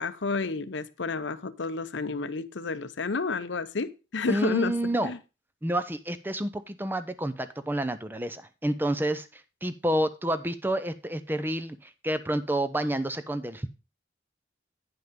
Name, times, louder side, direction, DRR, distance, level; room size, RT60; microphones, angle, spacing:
voice 1, 0.0-4.8 5.0-5.2, left 3 dB, 85° left, 0.7 m, -30 dB
voice 2, 4.3-5.1 5.6-13.7, right 1 dB, 10° right, 0.6 m, -29 dB
9.4 x 5.6 x 5.1 m
head